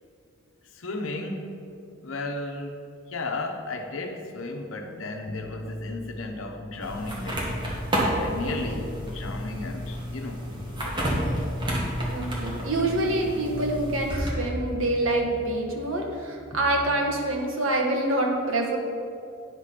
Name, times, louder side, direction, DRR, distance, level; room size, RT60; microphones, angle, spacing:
voice 1, 0.7-1.6 2.0-2.8 3.1-7.5 7.9-11.2, left 2 dB, 80° left, 4 dB, 1.0 m, -35 dB
sound 1, 5.3-7.9 8.3-10.3 10.6-14.0 14.3-16.9, left 1 dB, 20° left, 0.5 m, -40 dB
sound 2, 6.8-14.3, equal, 25° right, 1.7 m, -30 dB
voice 2, 8.4-8.8 12.0-18.8, right 1 dB, 75° right, 1 dB, 1.3 m, -26 dB
10.0 x 5.0 x 5.8 m, 2.5 s
head